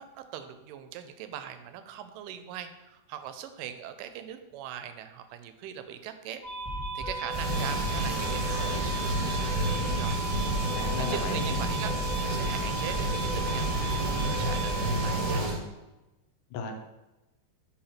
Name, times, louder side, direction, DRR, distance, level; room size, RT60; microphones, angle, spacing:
voice 1, 0.0-6.4 7.0-10.2 11.0-11.9 12.2-15.4, right 10 dB, 85° right, 9 dB, 2.2 m, -41 dB
sound 1, 6.4-15.4, right 1 dB, 25° left, 0.7 m, -34 dB
sound 2, 7.3-15.6, right 1 dB, 60° right, 2.3 m, -30 dB
voice 2, 10.7-11.6 16.5-16.7, left 5 dB, 80° left, 4 dB, 2.2 m, -34 dB
5.0 x 4.2 x 5.7 m, 1.0 s
omnidirectional pair, 3.8 m